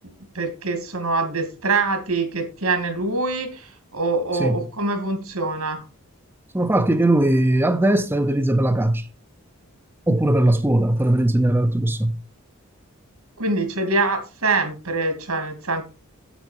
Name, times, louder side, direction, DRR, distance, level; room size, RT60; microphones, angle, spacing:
voice 1, 0.3-5.8 13.4-15.8, right 3 dB, 80° right, 2.5 m, -24 dB
voice 2, 6.5-9.1 10.1-12.2, right 1 dB, 10° right, 0.5 m, -19 dB
8.2 x 7.8 x 4.4 m
head